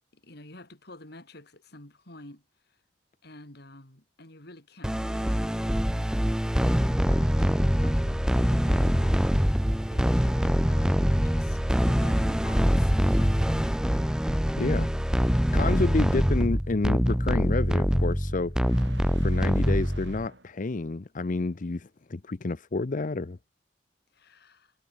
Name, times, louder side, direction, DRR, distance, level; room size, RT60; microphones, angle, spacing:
voice 1, 0.1-2.8 3.2-6.1 6.6-14.8 15.6-15.8 24.1-24.7, left 2 dB, 60° left, 5.0 m, -49 dB
sound 1, 4.8-20.3, equal, 5° right, 0.7 m, -24 dB
voice 2, 14.6-14.9 15.5-18.7 19.2-23.4, left 3 dB, 45° left, 0.6 m, -29 dB
sound 2, 16.5-20.6, right 2 dB, 70° right, 6.3 m, -52 dB
head